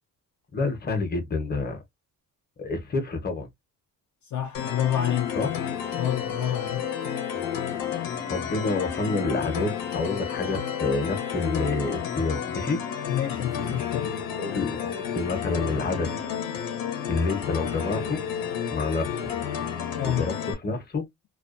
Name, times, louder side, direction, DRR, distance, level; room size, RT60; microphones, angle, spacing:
voice 1, 0.5-1.8 2.6-3.5 5.4-5.5 8.3-12.8 14.4-16.1 17.1-18.2 18.7-19.3 20.0-21.1, left 3 dB, 30° left, 0.8 m, -28 dB
voice 2, 4.2-5.4 6.0-6.9 13.1-14.1 20.0-20.3, left 11 dB, 55° left, 0.5 m, -28 dB
sound 1, 4.5-20.5, left 8 dB, 90° left, 0.7 m, -31 dB
2.4 x 2.2 x 2.4 m
cardioid pair, 135°, 34 cm